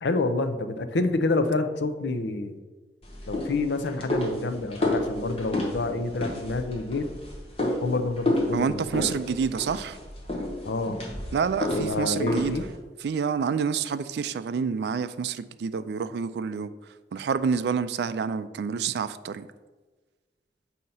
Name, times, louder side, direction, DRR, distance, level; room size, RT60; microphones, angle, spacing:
voice 1, 0.0-2.6 3.3-7.1 7.8-9.1 10.6-11.0 11.7-12.6, left 3 dB, 85° left, 8 dB, 0.6 m, -28 dB
sound 1, 3.0-12.8, left 1 dB, 30° left, 1.1 m, -31 dB
voice 2, 8.5-10.0 11.3-12.6 13.0-16.7 17.1-19.5, right 6 dB, 70° right, 13 dB, 0.3 m, -28 dB
7.6 x 2.8 x 5.5 m, 1.3 s
head